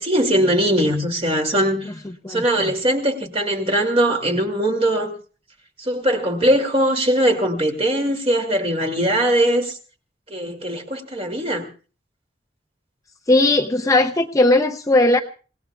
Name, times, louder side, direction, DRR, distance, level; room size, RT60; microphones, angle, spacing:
voice 1, 0.0-1.9 2.3-5.1 5.8-9.8 10.3-11.7, right 1 dB, 35° right, 2.5 m, -20 dB
voice 2, 13.3-15.2, left 2 dB, 20° left, 0.6 m, -17 dB
28.5 x 17.5 x 2.3 m
head